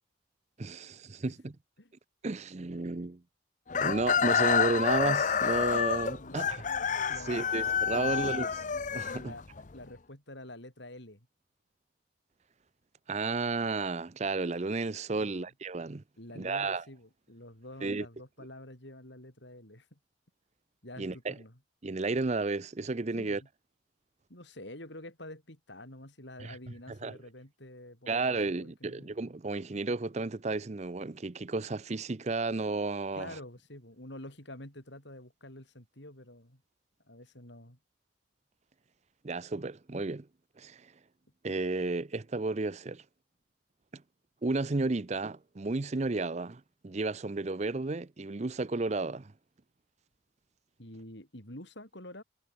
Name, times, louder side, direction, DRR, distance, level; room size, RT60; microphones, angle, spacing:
voice 1, 0.6-1.5 2.2-3.2 3.7-6.6 7.3-8.5 8.9-9.3 13.1-16.0 16.4-16.8 17.8-18.1 21.0-21.4 21.8-23.4 26.4-26.6 26.9-27.2 28.1-33.4 39.2-40.3 40.6-40.9 41.4-43.0 43.9-44.0 44.4-49.3, right 3 dB, 35° right, 0.6 m, -32 dB
Chicken rooster, 3.7-9.7, left 6 dB, 40° left, 0.6 m, -28 dB
voice 2, 6.2-6.5 7.1-8.2 9.2-9.4 9.7-11.3 15.2-15.5 16.2-20.0 20.8-21.6 23.2-23.5 24.3-29.1 33.2-36.6 37.1-37.8 50.8-52.2, left 1 dB, 65° left, 6.8 m, -48 dB
head